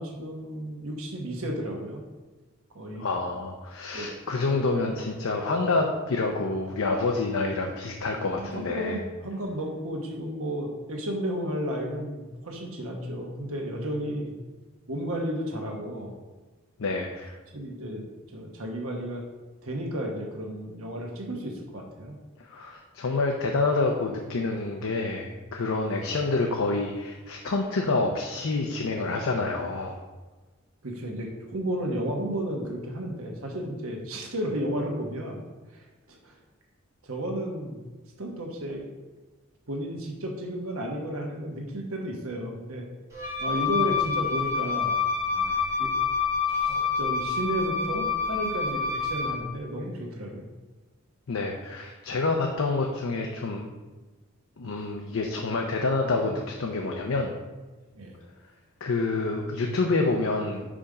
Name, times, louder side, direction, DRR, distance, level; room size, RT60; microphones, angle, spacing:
voice 1, 0.0-2.0 2.7-3.0 3.9-4.6 8.4-14.3 14.9-16.2 17.5-18.0 18.3-19.2 19.6-22.1 25.8-26.0 30.8-35.4 36.1-36.3 37.0-37.9 38.2-38.8 39.7-42.8 43.4-45.0 45.3-45.9 46.5-50.5 57.9-58.2, equal, 90° right, 0 dB, 1.2 m, -33 dB
voice 2, 3.0-9.0 16.8-17.3 22.4-30.0 51.3-53.7 54.6-57.3 58.8-60.7, left 3 dB, 80° left, 2 dB, 0.6 m, -27 dB
Wind instrument woodwind instrument, 43.1-49.4, left 5 dB, 15° right, 1.5 m, -27 dB
5.2 x 5.0 x 4.9 m, 1.3 s
head